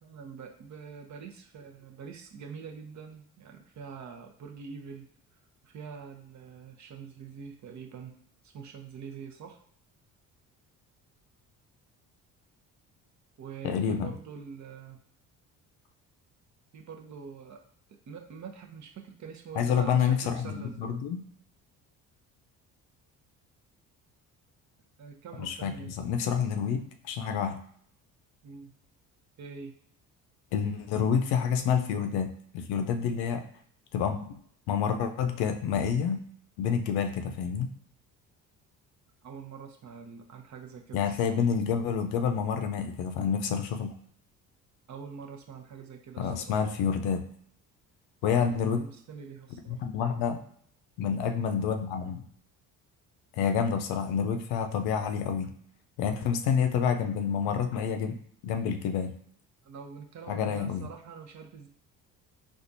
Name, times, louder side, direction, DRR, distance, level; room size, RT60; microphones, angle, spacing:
voice 1, 0.0-5.1 5.6-8.2 8.4-9.6 13.4-15.0 16.7-17.6 18.1-20.9 25.0-25.9 28.4-28.7 29.4-29.8 39.2-41.4 44.9-46.5 48.3-49.8 59.6-61.7, right 6 dB, 50° right, 3 dB, 0.7 m, -45 dB
voice 2, 13.6-14.1 19.5-21.2 25.4-27.6 30.5-33.4 33.9-34.4 34.7-36.2 36.6-37.7 40.9-43.9 46.2-47.2 48.2-48.8 49.7-50.4 51.0-52.2 53.3-55.5 56.0-58.2 58.4-59.2 60.3-60.9, left 7 dB, 75° left, 6 dB, 0.6 m, -28 dB
4.3 x 2.4 x 2.6 m, 0.62 s
supercardioid pair, 65°, 38 cm